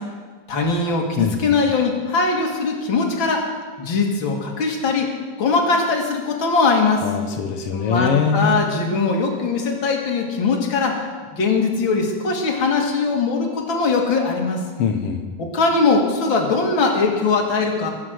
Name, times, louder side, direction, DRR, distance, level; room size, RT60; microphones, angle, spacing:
voice 1, 0.5-3.5 3.8-5.1 5.4-7.0 7.7-11.0 11.3-14.6 15.4-17.9, left 4 dB, 40° left, 1 dB, 2.2 m, -20 dB
voice 2, 1.2-1.5 7.0-8.6 14.8-15.2, left 6 dB, 80° left, 4 dB, 1.3 m, -22 dB
22.5 x 7.9 x 6.4 m, 1.5 s
omnidirectional pair, 4.0 m